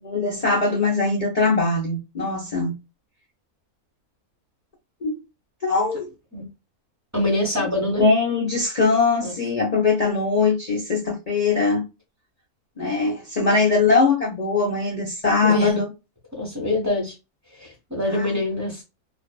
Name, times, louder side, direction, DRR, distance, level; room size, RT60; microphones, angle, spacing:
voice 1, 0.0-2.7 5.0-5.2 5.6-6.1 7.6-11.8 12.8-15.9 18.1-18.4, left 4 dB, 45° left, 0.5 m, -21 dB
voice 2, 7.1-8.1 9.2-9.3 15.4-15.8 16.4-17.1 17.6-18.8, left 1 dB, 15° right, 0.8 m, -25 dB
2.5 x 2.3 x 2.2 m
omnidirectional pair, 1.6 m